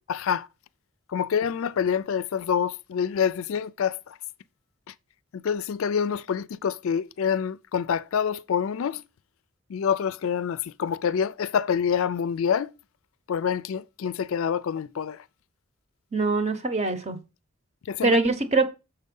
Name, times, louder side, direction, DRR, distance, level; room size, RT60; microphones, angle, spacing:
voice 1, 0.1-0.5 1.1-4.2 4.9-5.0 5.3-9.0 9.7-12.7 13.3-15.3 17.8-18.2, left 7 dB, 70° left, 0.4 m, -27 dB
voice 2, 16.1-17.2 18.0-18.7, right 3 dB, 30° right, 0.9 m, -23 dB
6.8 x 5.5 x 5.3 m
head